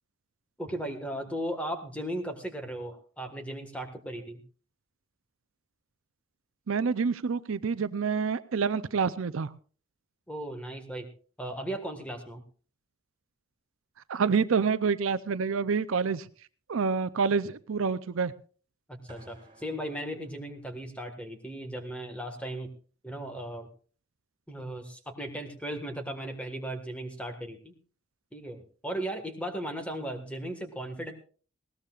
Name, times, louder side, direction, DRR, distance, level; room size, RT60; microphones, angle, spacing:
voice 1, 0.6-4.4 10.3-11.1 11.4-12.4 18.9-22.7 23.0-23.7 24.5-27.7 28.3-31.1, right 1 dB, 5° left, 5 dB, 1.5 m, -36 dB
voice 2, 6.7-9.5 14.1-16.3 16.7-18.3, right 5 dB, 75° right, 15 dB, 0.5 m, -27 dB
sound 1, 19.1-21.2, right 1 dB, 25° right, 4.6 m, -58 dB
20.0 x 17.5 x 2.4 m, 0.41 s
head